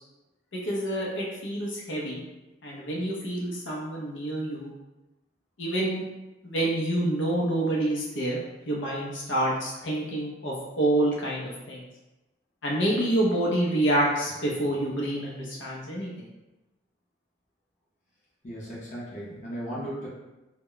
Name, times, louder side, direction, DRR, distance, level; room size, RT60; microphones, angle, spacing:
voice 1, 0.5-2.2 2.6-4.7 5.6-6.0 6.4-8.4 8.7-11.8 12.6-16.3, right 1 dB, 75° left, -4 dB, 0.6 m, -27 dB
voice 2, 18.4-20.1, equal, 40° left, -6 dB, 0.6 m, -36 dB
2.2 x 2.1 x 3.7 m, 1.0 s
head